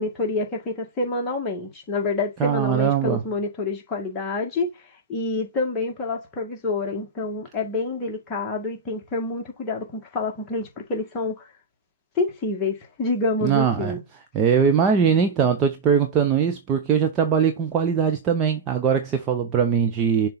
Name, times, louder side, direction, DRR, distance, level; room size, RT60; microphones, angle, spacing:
voice 1, 0.0-4.7 5.1-11.5 12.2-14.0, left 3 dB, 10° left, 1.9 m, -27 dB
voice 2, 2.4-3.2 13.4-13.9 14.3-20.3, right 7 dB, 15° right, 0.7 m, -21 dB
6.8 x 3.8 x 4.0 m
figure-of-eight pair, 150°, 0 cm